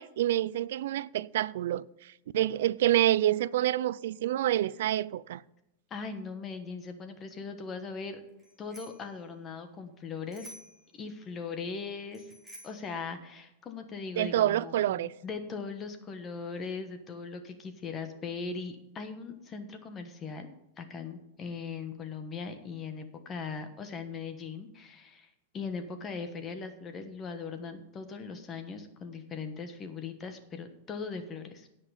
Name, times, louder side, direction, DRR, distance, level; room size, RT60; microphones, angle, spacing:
voice 1, 0.0-5.4 14.2-15.1, right 13 dB, 70° right, 0.4 m, -28 dB
voice 2, 5.9-8.2 8.6-10.5 10.9-12.3 12.6-31.7, left 5 dB, 25° left, 1.2 m, -39 dB
Bicycle bell, 8.4-9.1 10.3-10.9 12.1-12.9, equal, ahead, 2.9 m, -50 dB
17.0 x 5.8 x 5.0 m
supercardioid pair, 150°, 0 cm